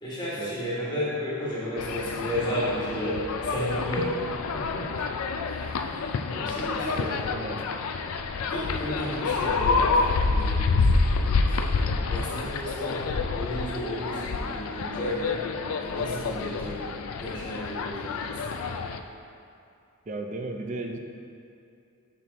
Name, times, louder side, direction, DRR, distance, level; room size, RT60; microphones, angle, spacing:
voice 1, 0.0-4.1 5.5-5.7 6.3-7.4 8.5-13.0 13.3-15.4 15.8-16.8 17.1-18.6, equal, 20° left, -9 dB, 1.3 m, -33 dB
sound 1, 1.8-19.0, left 4 dB, 70° left, 0.4 m, -28 dB
voice 2, 4.5-5.1 6.3-6.5 7.0-7.6 20.1-21.0, right 2 dB, 35° right, 4 dB, 0.4 m, -35 dB
6.1 x 5.8 x 3.5 m, 2.5 s
head